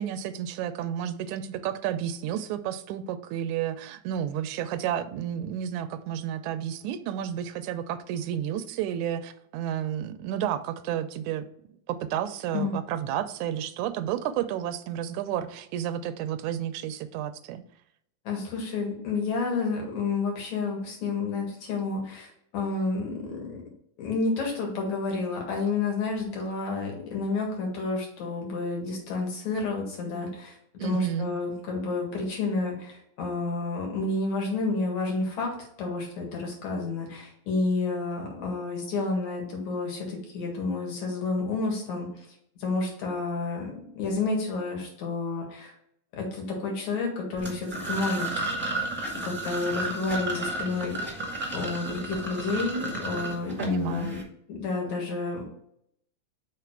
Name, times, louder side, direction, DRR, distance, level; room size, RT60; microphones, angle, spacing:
voice 1, 0.0-11.5 11.9-17.6 30.8-31.3 53.6-54.1, right 10 dB, 85° right, 11 dB, 2.0 m, -31 dB
voice 2, 18.2-23.6 24.0-30.6 30.8-42.3 42.6-45.7 46.2-48.3 49.2-51.2 51.5-54.2 54.5-55.4, left 3 dB, 70° left, 0 dB, 3.0 m, -30 dB
sound 1, 47.4-54.2, right 2 dB, 5° right, 1.0 m, -33 dB
5.8 x 4.6 x 4.6 m, 0.70 s
omnidirectional pair, 3.4 m